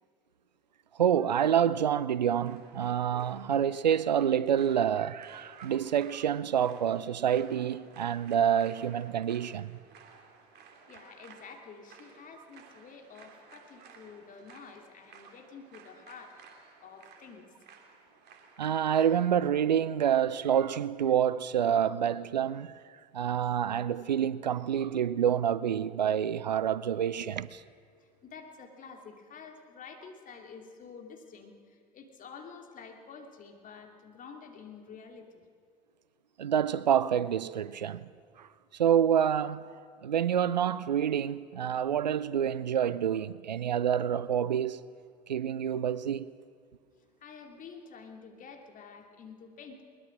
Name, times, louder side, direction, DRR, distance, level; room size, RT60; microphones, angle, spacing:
voice 1, 1.0-9.7 18.6-22.8 23.1-27.6 36.4-38.1 38.4-38.5 38.7-39.6 40.0-44.8 45.3-46.3, right 9 dB, 85° right, 0.5 m, -27 dB
sound 1, 2.4-19.5, right 5 dB, 50° right, 2.9 m, -56 dB
voice 2, 10.9-16.4 16.8-17.4 28.2-35.4 47.2-49.8, left 5 dB, 40° left, 2.9 m, -49 dB
21.0 x 21.0 x 6.1 m
figure-of-eight pair, 70°, 21 cm